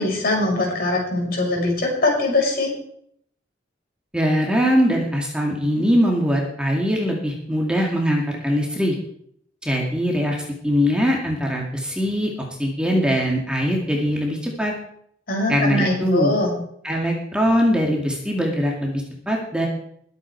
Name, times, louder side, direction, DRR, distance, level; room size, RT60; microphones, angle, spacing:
voice 1, 0.0-2.7 15.3-16.5, left 2 dB, 55° left, -1 dB, 6.0 m, -22 dB
voice 2, 4.1-8.9 9.6-12.3 12.6-14.7 15.5-16.3 16.8-19.7, equal, 5° right, -1 dB, 2.2 m, -21 dB
21.5 x 8.4 x 4.7 m, 0.68 s
head